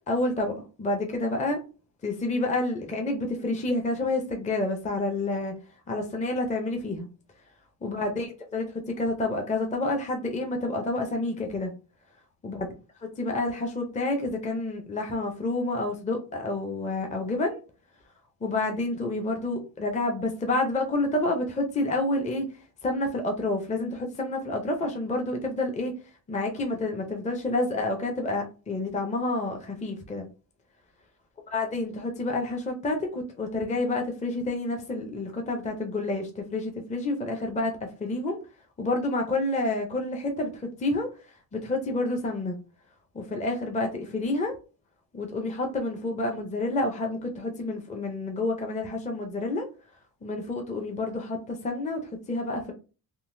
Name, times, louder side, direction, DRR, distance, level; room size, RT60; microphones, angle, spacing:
voice 1, 0.1-1.6 2.0-5.6 5.9-7.1 7.8-11.7 12.4-12.7 13.2-17.6 18.4-22.5 22.8-25.9 26.3-30.3 31.5-38.4 38.8-41.1 41.5-42.6 43.1-44.5 45.1-49.7 50.2-52.7, left 2 dB, 20° left, 0.5 m, -29 dB
3.7 x 2.5 x 2.5 m
wide cardioid pair, 145°, 41 cm